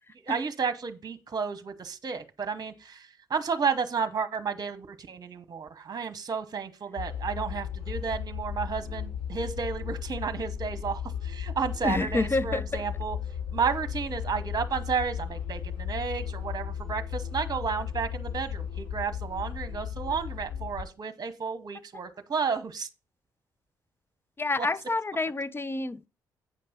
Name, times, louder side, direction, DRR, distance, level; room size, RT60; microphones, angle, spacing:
voice 1, 0.2-13.2 13.5-22.9 24.6-24.7, right 6 dB, 40° right, 1.3 m, -32 dB
sound 1, 7.0-20.8, left 8 dB, 70° left, 5.4 m, -35 dB
voice 2, 11.8-12.8 24.4-26.1, left 3 dB, 25° left, 0.6 m, -28 dB
8.7 x 5.2 x 5.4 m
hypercardioid pair, 45°, 10 cm